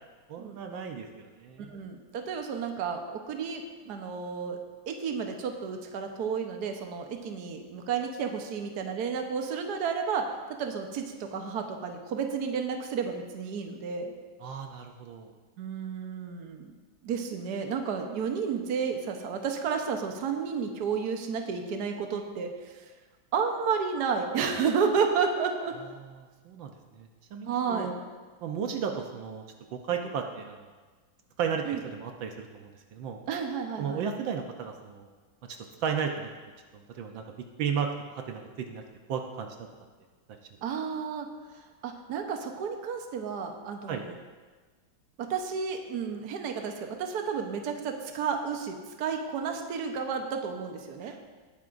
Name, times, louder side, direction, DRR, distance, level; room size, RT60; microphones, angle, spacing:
voice 1, 0.3-1.8 14.4-15.3 26.0-26.1 26.4-27.9 28.4-29.4 29.7-30.7 31.4-33.2 33.8-35.1 35.8-36.3 37.0-37.2 37.6-38.8 39.1-39.5 43.9-44.0 51.0-51.3, right 7 dB, 75° right, 3 dB, 1.5 m, -34 dB
voice 2, 1.6-4.6 4.9-10.3 10.6-14.1 15.6-16.7 17.0-22.7 23.3-25.7 27.5-27.9 31.6-31.8 33.3-34.0 40.6-41.3 41.8-44.1 45.2-51.1, right 6 dB, 60° right, 4 dB, 1.4 m, -31 dB
19.0 x 9.8 x 2.6 m, 1.4 s
omnidirectional pair, 2.1 m